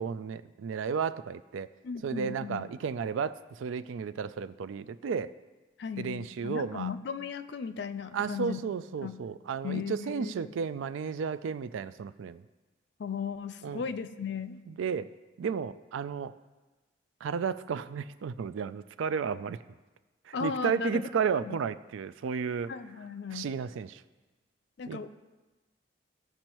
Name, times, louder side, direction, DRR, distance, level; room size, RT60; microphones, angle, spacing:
voice 1, 0.0-1.7 2.0-5.3 6.0-6.9 8.1-12.4 13.6-13.8 14.7-15.1 15.4-16.4 17.2-19.6 20.3-22.7 23.3-24.0 24.9-25.0, right 6 dB, 85° right, 14 dB, 0.3 m, -33 dB
voice 2, 1.8-2.6 5.8-8.6 9.0-9.2 9.6-10.5 13.0-14.6 20.3-21.0 21.3-21.6 22.7-23.5 24.8-25.1, left 6 dB, 60° left, 11 dB, 0.4 m, -36 dB
16.0 x 5.3 x 3.0 m, 1.2 s
head